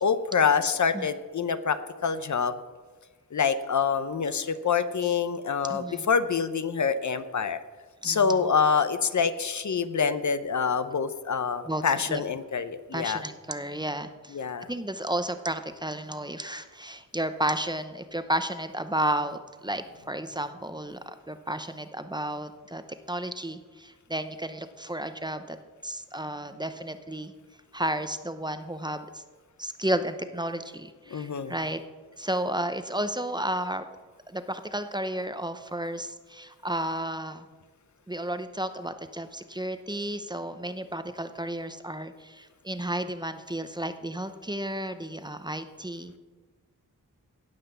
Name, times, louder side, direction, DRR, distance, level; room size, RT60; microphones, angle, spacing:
voice 1, 0.0-2.5 3.3-7.6 8.0-13.2 14.3-14.7 31.1-31.5, left 6 dB, 60° left, 11 dB, 0.8 m, -26 dB
voice 2, 5.7-6.1 8.0-8.4 11.7-11.8 12.1-12.3 12.9-14.4 14.7-25.6 25.8-27.3 27.7-29.2 29.6-31.8 32.2-33.8 34.3-37.5 38.1-46.2, right 1 dB, 15° right, 9 dB, 0.8 m, -32 dB
17.0 x 5.8 x 6.9 m, 1.4 s
wide cardioid pair, 75°, 33 cm